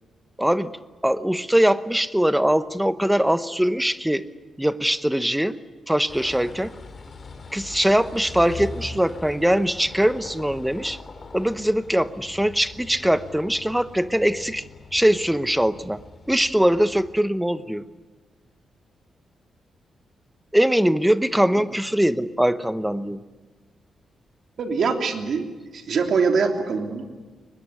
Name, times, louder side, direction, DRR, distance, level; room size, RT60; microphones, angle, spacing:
voice 1, 0.4-0.7 1.0-4.3 4.6-5.6 5.9-6.7 7.5-11.0 11.3-14.6 14.9-17.8 20.5-23.2, equal, 5° right, 13 dB, 0.9 m, -22 dB
sound 1, 6.1-17.1, left 3 dB, 35° left, 2.8 m, -41 dB
voice 2, 24.6-25.5 25.7-27.1, right 5 dB, 55° right, 4 dB, 3.2 m, -23 dB
23.0 x 21.0 x 9.7 m, 1.3 s
wide cardioid pair, 135°, 0 cm